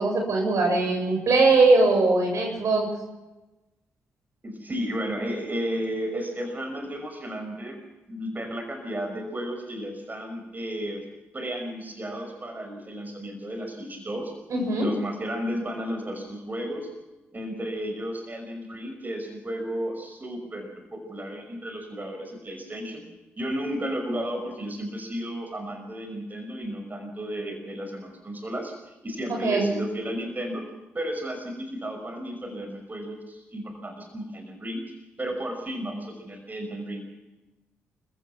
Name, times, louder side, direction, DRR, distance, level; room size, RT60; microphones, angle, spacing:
voice 1, 0.0-2.9 14.5-14.9 29.4-29.7, right 3 dB, 60° right, 3 dB, 7.4 m, -21 dB
voice 2, 4.4-7.8 8.1-11.1 11.3-14.3 14.8-16.9 17.3-23.1 23.4-30.6 30.9-34.9 35.2-37.1, equal, 30° right, 4 dB, 5.8 m, -33 dB
29.5 x 15.5 x 6.1 m, 1.1 s
hypercardioid pair, 45°, 6 cm